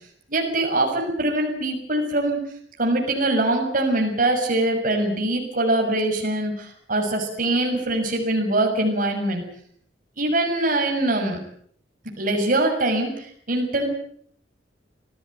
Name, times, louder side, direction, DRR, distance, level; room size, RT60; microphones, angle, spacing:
voice 1, 0.3-2.4 2.8-9.4 10.2-11.4 12.2-13.9, right 1 dB, 50° right, 2 dB, 6.3 m, -23 dB
26.0 x 18.0 x 9.1 m, 0.64 s
head